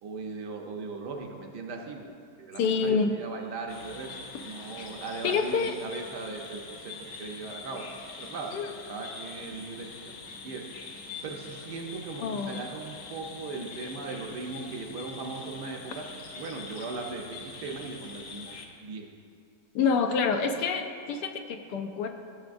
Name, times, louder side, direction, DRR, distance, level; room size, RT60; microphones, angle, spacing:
voice 1, 0.0-2.0 2.4-4.1 4.4-6.9 7.2-7.8 8.2-8.5 8.9-10.2 10.4-10.6 11.2-16.0 16.3-18.5 18.8-19.1, right 4 dB, 70° right, 1 dB, 1.4 m, -38 dB
voice 2, 2.6-3.1 4.8-4.9 5.2-5.7 8.5-8.7 12.2-12.6 19.7-22.1, left 5 dB, 75° left, 6 dB, 1.1 m, -27 dB
sound 1, 3.7-18.7, left 4 dB, 60° left, 1.0 m, -44 dB
14.0 x 6.7 x 2.6 m, 2.3 s
omnidirectional pair, 1.9 m